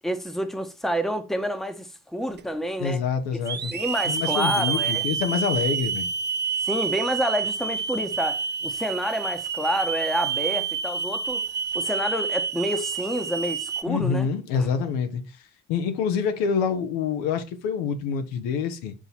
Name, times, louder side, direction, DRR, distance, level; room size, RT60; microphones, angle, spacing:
voice 1, 0.0-3.0 3.7-5.0 6.6-11.4 11.7-14.3 14.6-14.7, equal, ahead, 1.0 m, -28 dB
Hiss / Alarm, 2.4-2.5 3.5-13.8, right 6 dB, 25° right, 0.6 m, -28 dB
voice 2, 2.8-3.7 4.1-6.1 13.9-15.2 15.7-18.9, left 6 dB, 70° left, 0.9 m, -26 dB
6.1 x 4.0 x 4.1 m
hypercardioid pair, 50°, 42 cm